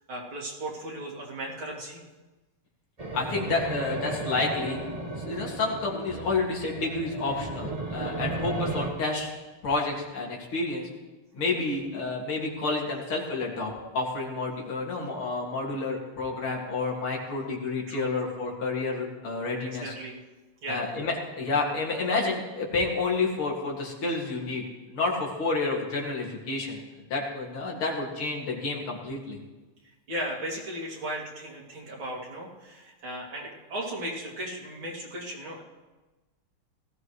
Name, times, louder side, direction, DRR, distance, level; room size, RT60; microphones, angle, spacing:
voice 1, 0.1-2.0 7.3-7.5 17.9-18.1 19.6-20.2 20.6-20.8 30.1-35.6, right 1 dB, 65° right, -4 dB, 3.5 m, -36 dB
sound 1, 3.0-8.9, right 2 dB, 25° right, 0.9 m, -34 dB
voice 2, 3.1-4.8 5.2-9.3 9.6-10.9 11.3-19.9 20.7-24.6 24.9-26.8 27.1-29.4, left 3 dB, 70° left, -2 dB, 3.1 m, -30 dB
18.5 x 15.5 x 3.2 m, 1.2 s
omnidirectional pair, 2.4 m